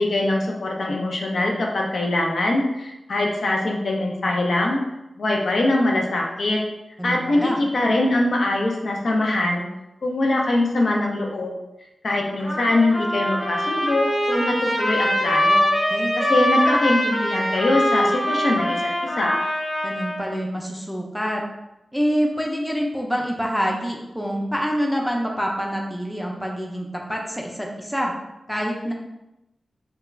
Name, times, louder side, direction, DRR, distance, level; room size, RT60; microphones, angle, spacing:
voice 1, 0.0-4.8 5.2-6.6 7.0-9.7 10.0-11.6 12.0-15.7 16.2-19.4, left 2 dB, 65° left, 0 dB, 0.4 m, -22 dB
voice 2, 7.0-7.6 15.9-16.2 19.8-21.4 21.9-28.1 28.5-28.9, equal, ahead, -1 dB, 0.4 m, -26 dB
Trumpet, 12.4-20.3, equal, 50° left, 1.2 m, -23 dB
2.3 x 2.2 x 3.1 m, 0.93 s
wide cardioid pair, 100°, 0 cm